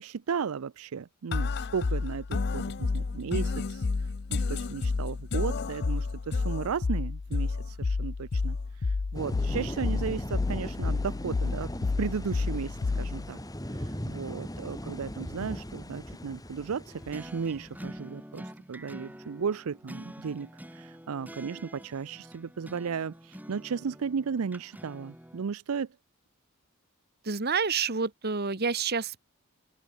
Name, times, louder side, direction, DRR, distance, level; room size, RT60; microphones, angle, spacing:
voice 1, 0.0-11.7 12.0-13.4 13.7-26.0, right 6 dB, 75° right, 0.5 m, -35 dB
sound 1, 1.3-13.3, left 4 dB, 50° left, 0.5 m, -30 dB
sound 2, 9.1-18.0, equal, 15° left, 3.7 m, -39 dB
sound 3, 16.9-25.4, equal, 10° right, 7.0 m, -46 dB
voice 2, 27.2-29.2, right 5 dB, 45° right, 1.4 m, -28 dB
open air
head